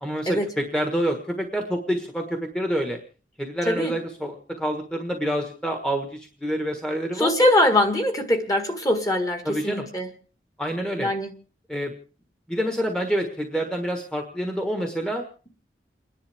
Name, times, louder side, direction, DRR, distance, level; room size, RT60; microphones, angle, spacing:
voice 1, 0.0-3.0 3.4-7.3 9.4-9.9 10.6-11.1 11.7-11.9 12.5-15.2, equal, 5° left, 2 dB, 1.4 m, -27 dB
voice 2, 7.1-10.1 11.0-11.3, left 1 dB, 20° left, 6 dB, 1.8 m, -22 dB
30.0 x 10.5 x 3.5 m, 0.38 s
head